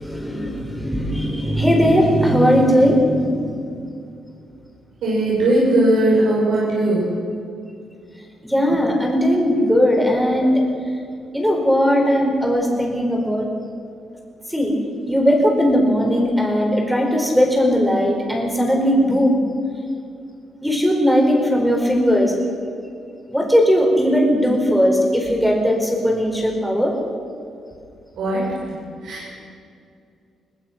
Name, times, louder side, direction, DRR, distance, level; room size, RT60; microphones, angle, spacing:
voice 1, 0.0-3.8 8.4-10.6 11.3-13.5 14.5-14.7 15.1-19.4 20.6-22.4 23.3-26.9, equal, ahead, 1 dB, 4.6 m, -18 dB
voice 2, 5.0-7.1 28.2-28.5 29.0-29.3, right 1 dB, 90° right, -6 dB, 6.8 m, -18 dB
22.0 x 20.5 x 6.0 m, 2.4 s
cardioid pair, 145°, 0 cm